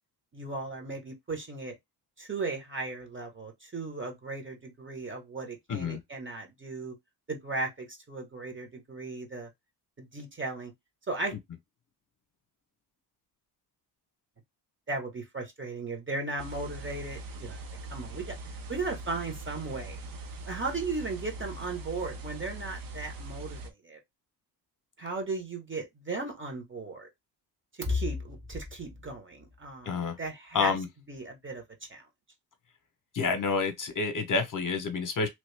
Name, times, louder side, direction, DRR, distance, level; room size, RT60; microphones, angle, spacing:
voice 1, 0.3-1.7 2.2-6.9 7.3-9.5 10.0-10.7 11.1-11.4 14.9-17.6 17.9-18.4 18.7-20.0 20.5-24.0 25.0-27.1 27.8-30.7 31.1-31.6 31.9-32.0, right 2 dB, 30° right, 1.3 m, -36 dB
voice 2, 5.7-6.0 29.8-30.2 30.5-30.9 33.1-35.3, left 4 dB, 45° left, 0.9 m, -28 dB
sound 1, 16.4-23.7, right 2 dB, 55° right, 0.8 m, -41 dB
3.1 x 2.5 x 3.3 m
cardioid pair, 105°, 42 cm